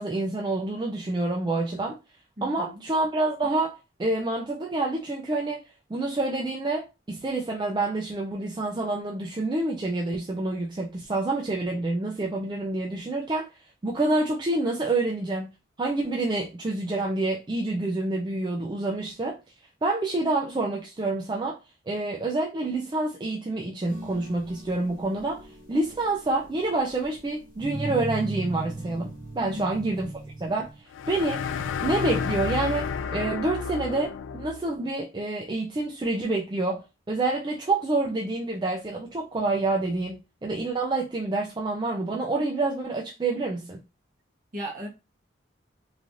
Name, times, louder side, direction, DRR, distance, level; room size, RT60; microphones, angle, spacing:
voice 1, 0.0-2.0 2.4-13.5 13.8-15.5 15.8-19.4 19.8-21.6 21.9-30.1 30.4-31.5 31.8-32.9 33.1-43.8, right 2 dB, 25° right, 0.3 m, -28 dB
voice 2, 2.4-2.8 29.4-29.6 44.5-44.9, equal, 45° right, 1.1 m, -36 dB
sound 1, 23.9-30.8, right 2 dB, 20° left, 1.1 m, -38 dB
sound 2, 30.9-34.7, left 6 dB, 90° left, 0.3 m, -31 dB
3.1 x 2.5 x 2.5 m
head